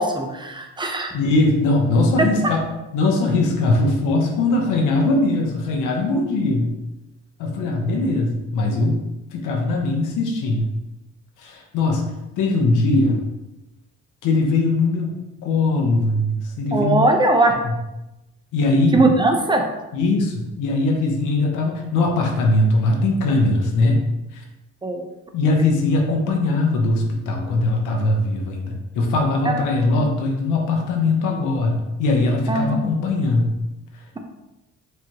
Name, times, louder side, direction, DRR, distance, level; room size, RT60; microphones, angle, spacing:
voice 1, 0.0-1.1 16.7-17.5 18.9-19.6 24.8-25.0 29.4-29.6 29.9-30.0 32.5-32.9, right 2 dB, 15° right, 4 dB, 0.6 m, -20 dB
voice 2, 1.1-2.7 2.9-6.7 7.4-9.0 9.3-10.7 11.4-12.0 12.4-13.2 14.2-17.1 17.5-17.7 18.5-19.0 19.9-24.1 24.3-24.4 25.3-33.5, left 2 dB, 90° left, 1 dB, 0.8 m, -20 dB
4.6 x 3.3 x 2.9 m, 0.98 s
cardioid pair, 90°, 30 cm